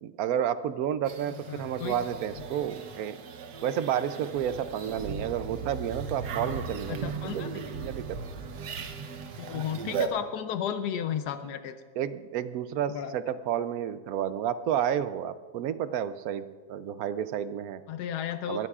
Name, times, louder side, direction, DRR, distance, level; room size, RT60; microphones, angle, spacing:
voice 1, 0.0-3.2 3.6-8.2 12.0-17.8 18.5-18.7, right 9 dB, 70° right, 13 dB, 1.0 m, -31 dB
sound 1, 1.1-10.1, right 5 dB, 90° right, 1.5 m, -37 dB
voice 2, 1.5-2.1 6.9-7.6 9.3-11.8 12.9-13.1 17.9-18.7, left 9 dB, 90° left, 9 dB, 1.3 m, -33 dB
21.0 x 14.5 x 2.4 m, 1.4 s
omnidirectional pair, 1.7 m